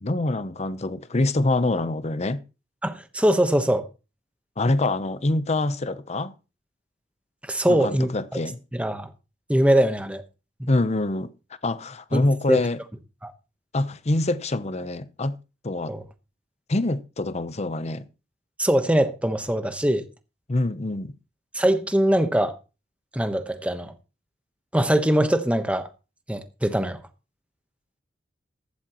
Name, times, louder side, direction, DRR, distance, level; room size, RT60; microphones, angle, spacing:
voice 1, 0.0-2.4 4.6-6.3 7.7-8.6 10.7-11.3 11.6-12.8 13.7-15.4 15.6-15.9 16.7-18.1 20.5-21.1, left 2 dB, 35° left, 0.8 m, -25 dB
voice 2, 2.8-3.9 7.5-8.1 8.7-9.1 9.5-10.2 10.6-10.7 12.1-12.6 13.2-13.3 15.9-16.0 18.6-20.1 21.5-22.6 23.1-23.9 24.7-25.9 26.3-27.0, right 1 dB, 5° right, 1.1 m, -22 dB
14.5 x 11.5 x 3.0 m
head